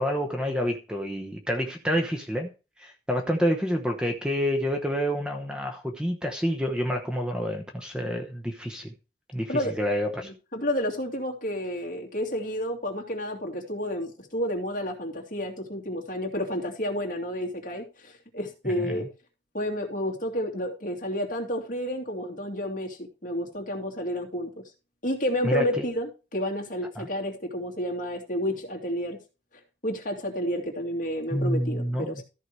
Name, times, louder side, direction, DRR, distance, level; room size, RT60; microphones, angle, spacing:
voice 1, 0.0-2.5 2.8-8.9 9.3-10.3 18.7-19.0 25.4-25.8 27.0-27.1 31.3-32.2, equal, 5° right, 0.9 m, -28 dB
voice 2, 10.2-19.1 19.5-24.5 25.0-29.2 29.8-32.2, equal, 45° left, 2.5 m, -30 dB
13.5 x 4.8 x 4.7 m
head